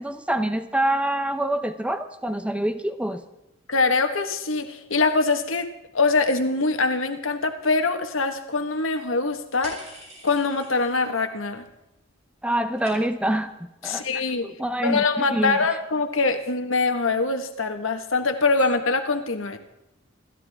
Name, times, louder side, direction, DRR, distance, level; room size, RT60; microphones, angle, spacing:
voice 1, 0.0-3.2 12.4-14.1 14.4-15.6, right 1 dB, 5° right, 9 dB, 0.8 m, -26 dB
voice 2, 3.7-5.7 5.9-9.9 10.2-11.6 13.8-14.5 14.8-19.6, left 3 dB, 85° left, 6 dB, 1.5 m, -23 dB
sound 1, 9.6-11.2 11.5-12.1 12.3-13.4, right 1 dB, 35° right, 5.8 m, -45 dB
28.0 x 13.5 x 3.6 m, 0.89 s
head